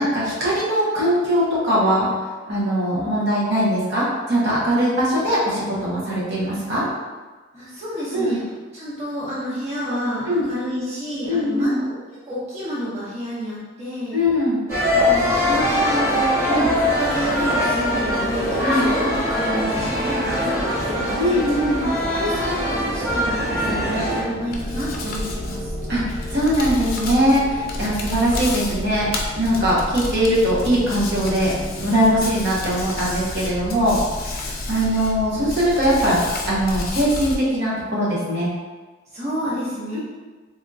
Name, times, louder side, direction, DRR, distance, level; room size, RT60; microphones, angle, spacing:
voice 1, 0.0-2.1 2.5-6.8 8.1-8.4 10.3-10.5 11.3-11.8 14.1-14.7 16.5-16.7 18.6-18.9 21.2-21.9 25.9-29.1 29.4-31.5 31.8-36.2 36.4-38.5, equal, 60° right, -7 dB, 1.0 m, -21 dB
voice 2, 7.5-8.4 8.7-11.9 12.2-14.2 15.0-16.5 17.0-21.4 22.1-25.7 39.1-40.0, equal, 35° right, -10 dB, 0.8 m, -29 dB
sound 1, 14.7-24.2, left 1 dB, 15° right, 1.3 m, -22 dB
sound 2, 23.0-29.5, equal, ahead, 0.8 m, -36 dB
Hands, 24.5-37.4, left 2 dB, 50° left, 0.4 m, -30 dB
3.4 x 2.7 x 2.3 m, 1.3 s
head